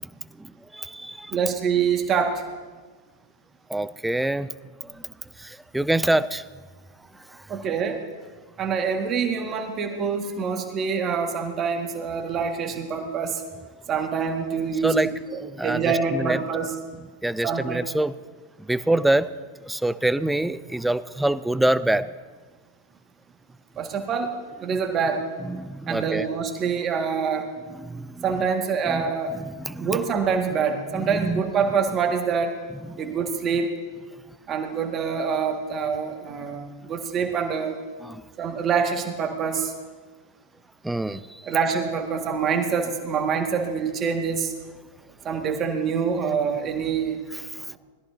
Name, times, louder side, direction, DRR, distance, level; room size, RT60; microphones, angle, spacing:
voice 1, 0.4-1.4 3.7-4.5 4.8-4.9 5.4-6.4 14.8-15.1 15.4-16.4 17.2-18.1 18.6-19.3 19.6-22.1 25.4-26.3 27.7-28.3 28.9-29.0 29.4-30.0 30.9-31.4 32.9-33.2 38.0-38.2 40.8-41.5 47.5-47.8, right 1 dB, 5° right, 16 dB, 0.4 m, -26 dB
voice 2, 1.3-2.4 7.5-8.0 8.6-13.4 13.9-16.7 17.4-17.8 23.8-24.3 24.6-25.2 25.9-27.5 28.2-29.3 29.8-32.6 33.0-33.7 34.5-37.8 38.4-39.7 41.4-44.5 45.2-47.2 47.7-47.8, right 6 dB, 30° right, 3 dB, 1.9 m, -25 dB
21.0 x 14.0 x 2.8 m, 1.4 s
figure-of-eight pair, 90°, 0 cm